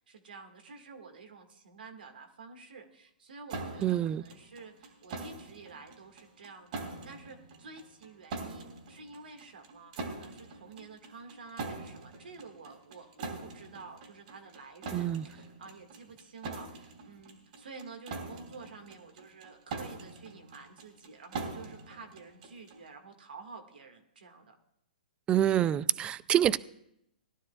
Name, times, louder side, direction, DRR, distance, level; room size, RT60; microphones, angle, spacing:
voice 1, 0.1-24.6, right 4 dB, 80° right, 1.9 m, -50 dB
sound 1, 3.5-22.9, right 3 dB, 55° right, 2.9 m, -43 dB
voice 2, 3.8-4.2 14.9-15.3 25.3-26.6, right 11 dB, 20° right, 0.3 m, -26 dB
19.5 x 12.0 x 2.4 m
hypercardioid pair, 135°, 5 cm